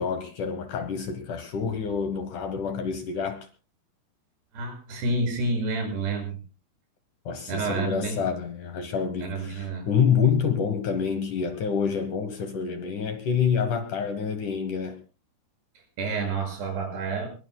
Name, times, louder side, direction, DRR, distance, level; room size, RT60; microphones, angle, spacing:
voice 1, 0.0-3.4 7.3-15.0, left 6 dB, 65° left, 2.2 m, -27 dB
voice 2, 4.5-6.4 7.5-8.2 9.2-9.9 16.0-17.3, right 3 dB, 80° right, 8.5 m, -29 dB
23.5 x 21.0 x 2.3 m
omnidirectional pair, 4.7 m